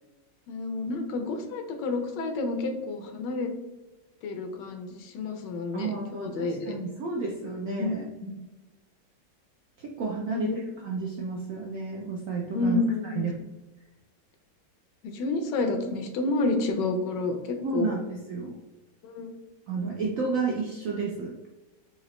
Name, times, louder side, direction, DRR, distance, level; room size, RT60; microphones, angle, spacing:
voice 1, 0.5-3.5 4.2-6.7 7.8-8.0 8.2-8.3 10.3-10.6 12.5-13.3 15.0-17.9 19.0-19.3, left 3 dB, 75° left, 5 dB, 1.2 m, -29 dB
voice 2, 5.7-8.0 9.8-10.5 10.8-13.3 17.6-18.6 19.7-21.3, right 4 dB, 75° right, -1 dB, 0.7 m, -31 dB
4.0 x 2.8 x 3.0 m, 1.1 s
omnidirectional pair, 2.0 m